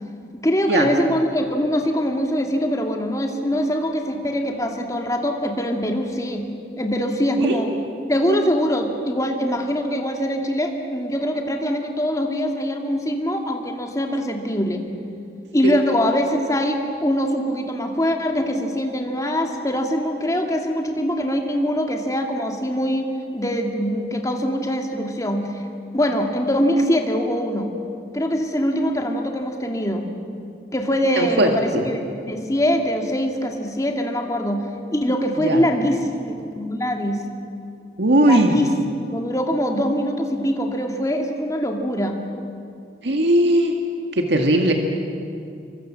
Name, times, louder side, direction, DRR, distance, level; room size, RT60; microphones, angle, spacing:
voice 1, 0.3-6.5 6.8-7.7 8.1-14.9 15.5-23.1 23.3-25.6 25.9-27.7 28.1-30.1 30.7-32.0 32.2-36.1 36.5-37.3 38.2-38.7 39.1-42.2, equal, 20° left, 3 dB, 2.4 m, -23 dB
voice 2, 31.2-31.8 35.4-35.6 38.0-38.6 43.0-43.7 44.1-44.7, right 1 dB, 75° right, 3 dB, 1.9 m, -18 dB
27.5 x 23.5 x 7.6 m, 2.5 s
head